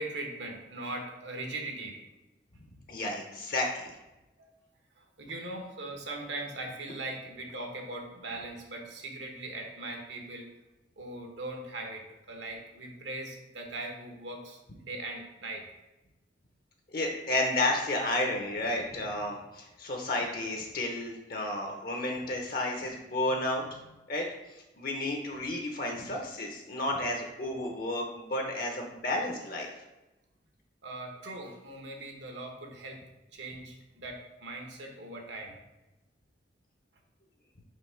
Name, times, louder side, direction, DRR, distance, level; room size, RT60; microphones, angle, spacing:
voice 1, 0.0-2.0 4.4-4.5 5.0-10.4 11.0-14.6 14.8-15.6 23.7-23.8 30.8-33.0 33.3-35.5, right 2 dB, 75° right, 2 dB, 1.2 m, -40 dB
voice 2, 2.9-4.0 16.9-23.6 24.1-24.3 24.8-29.7, left 1 dB, 50° left, 2 dB, 0.8 m, -32 dB
5.2 x 3.4 x 5.7 m, 1.0 s
head